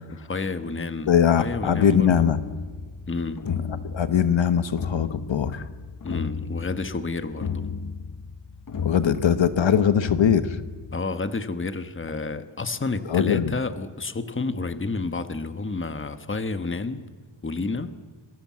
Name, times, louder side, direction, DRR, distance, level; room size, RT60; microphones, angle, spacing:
voice 1, 0.3-2.3 3.1-3.4 6.0-7.7 10.9-17.0 17.4-17.9, left 3 dB, 25° left, 10 dB, 1.3 m, -30 dB
voice 2, 1.1-2.4 3.9-5.6 8.8-10.6 13.1-13.5, left 8 dB, 70° left, 12 dB, 1.1 m, -21 dB
sound 1, 1.4-11.0, left 6 dB, 45° left, 1.1 m, -34 dB
27.5 x 22.0 x 7.5 m, 1.5 s
wide cardioid pair, 135°, 46 cm